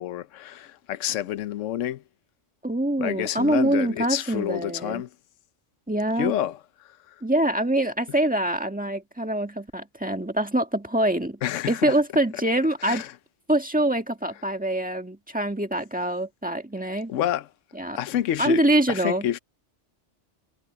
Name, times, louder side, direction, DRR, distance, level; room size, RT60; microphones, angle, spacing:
voice 1, 0.0-2.0 3.0-5.1 6.2-6.6 6.8-7.2 11.4-12.0 12.8-13.1 17.1-17.5 18.0-19.4, left 11 dB, 85° left, 1.0 m, -28 dB
voice 2, 2.6-5.0 5.9-6.3 7.2-11.4 11.7-13.0 13.5-17.1 17.7-18.0 18.4-19.2, right 1 dB, 5° right, 1.6 m, -24 dB
omnidirectional pair, 1.3 m